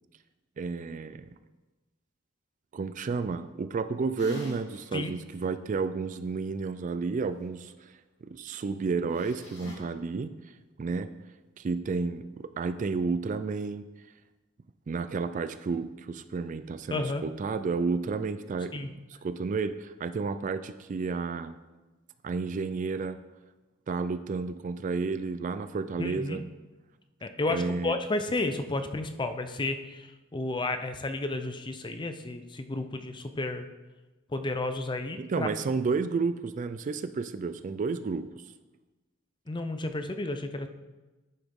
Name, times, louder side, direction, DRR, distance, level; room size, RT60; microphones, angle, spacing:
voice 1, 0.6-1.3 2.7-7.9 8.2-10.3 10.8-11.1 11.6-13.8 14.9-21.6 22.2-23.2 23.9-26.5 27.5-28.0 35.2-38.2, right 4 dB, 40° right, 12 dB, 0.3 m, -31 dB
sound 1, 4.2-4.9 5.3-5.4 9.1-9.7, right 1 dB, 60° left, 2.8 m, -42 dB
voice 2, 16.9-17.2 18.7-18.9 26.0-26.4 27.2-33.7 34.3-35.5 39.5-40.7, left 2 dB, 25° left, 8 dB, 0.5 m, -32 dB
9.9 x 6.8 x 3.6 m, 1.1 s
head